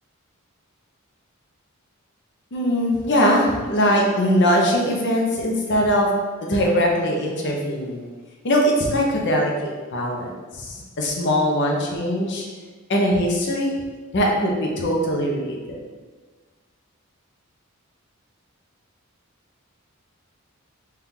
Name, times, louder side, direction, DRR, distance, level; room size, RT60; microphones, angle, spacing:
voice 1, 2.5-6.1 6.4-8.1 8.4-12.5 12.9-13.8 14.1-15.8, equal, 55° left, -1 dB, 0.7 m, -21 dB
4.3 x 2.4 x 3.7 m, 1.4 s
head